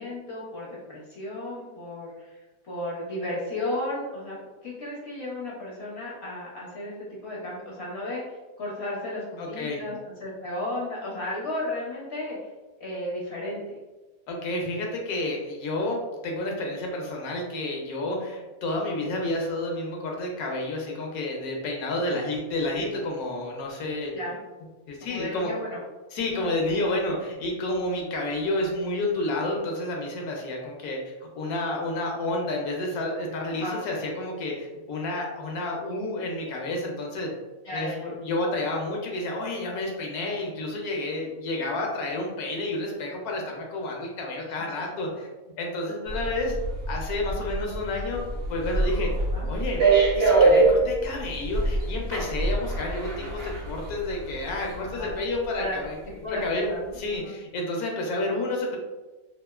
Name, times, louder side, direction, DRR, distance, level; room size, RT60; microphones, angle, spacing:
voice 1, 0.0-12.5 12.8-13.8 24.1-24.4 25.0-25.8 26.4-26.5 33.6-33.8 37.6-38.1 44.5-44.9 49.3-49.5 54.8-55.2 55.6-55.8 56.0-57.4, left 1 dB, 60° left, -5 dB, 0.7 m, -34 dB
voice 2, 9.4-9.8 14.3-24.1 24.9-25.5 26.1-37.3 37.7-45.3 45.6-46.6 46.9-48.2 48.5-49.1 49.5-49.9 50.1-56.0 56.3-56.7 57.0-58.8, left 2 dB, 80° left, 0 dB, 1.1 m, -30 dB
sound 1, 46.1-55.1 55.4-55.6, right 3 dB, 55° right, 0.8 m, -25 dB
2.8 x 2.4 x 2.3 m, 1.2 s
omnidirectional pair, 1.6 m